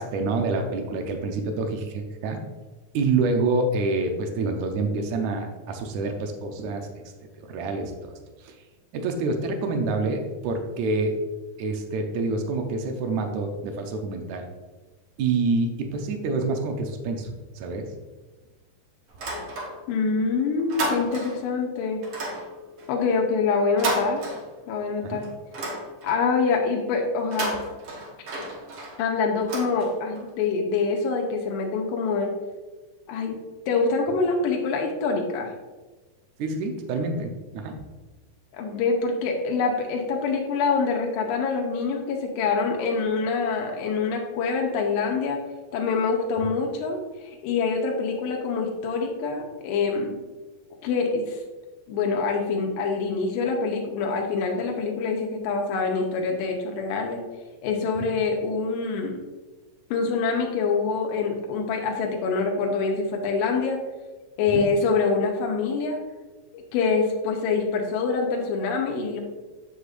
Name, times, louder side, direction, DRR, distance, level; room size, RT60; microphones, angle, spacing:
voice 1, 0.0-2.4 2.9-7.0 7.4-8.1 8.4-8.5 8.9-11.2 11.6-14.5 15.2-17.9 25.0-25.2 36.4-37.8 58.0-58.1 64.5-64.6, right 3 dB, 75° right, 4 dB, 1.7 m, -27 dB
sound 1, 19.1-20.1 20.4-21.5 22.0-24.9 25.2-26.4 27.1-30.3, right 2 dB, 55° right, 1.6 m, -33 dB
voice 2, 19.9-22.0 22.9-24.2 24.7-25.3 26.0-27.6 29.0-32.3 33.1-33.4 33.7-35.5 38.5-45.4 45.7-50.1 50.8-51.4 51.9-57.2 57.6-59.2 59.9-63.8 64.4-66.0 66.5-69.2, left 4 dB, 85° left, 1 dB, 2.4 m, -25 dB
8.0 x 6.4 x 2.5 m, 1.2 s
omnidirectional pair, 4.1 m